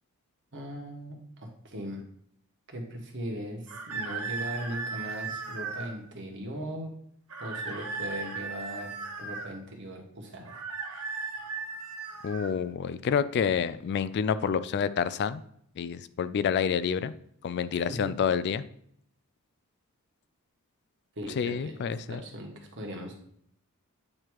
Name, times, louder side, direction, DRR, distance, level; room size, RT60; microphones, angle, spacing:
voice 1, 0.5-2.0 2.7-6.9 7.4-10.6 17.9-18.1 21.2-23.2, equal, 55° right, 1 dB, 1.4 m, -39 dB
sound 1, 3.7-5.9 7.3-9.5 10.4-12.5, right 4 dB, 85° right, 1.3 m, -36 dB
voice 2, 12.2-15.4 15.8-17.1 17.4-18.6 21.4-22.2, left 7 dB, 50° left, 15 dB, 0.3 m, -28 dB
8.6 x 3.0 x 4.7 m, 0.68 s
head